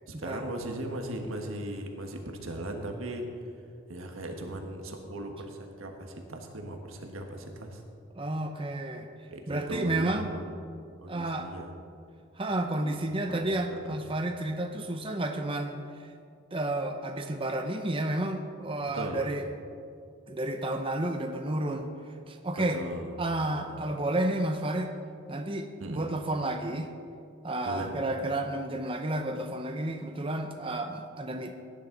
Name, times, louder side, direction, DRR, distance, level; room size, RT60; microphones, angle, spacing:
voice 1, 0.1-3.3 3.9-7.8 9.3-10.5 11.0-11.7 12.8-13.0 13.3-14.0 18.9-19.2 22.7-23.9 25.8-26.1 27.6-28.0, right 1 dB, 90° right, 3 dB, 1.5 m, -38 dB
voice 2, 8.2-9.1 9.5-10.3 11.1-11.5 12.4-15.8 16.5-19.5 20.3-21.9 22.3-22.8 23.2-24.9 25.3-26.9 27.4-31.6, right 1 dB, 25° right, 5 dB, 0.7 m, -31 dB
16.5 x 10.5 x 3.9 m, 2.4 s
head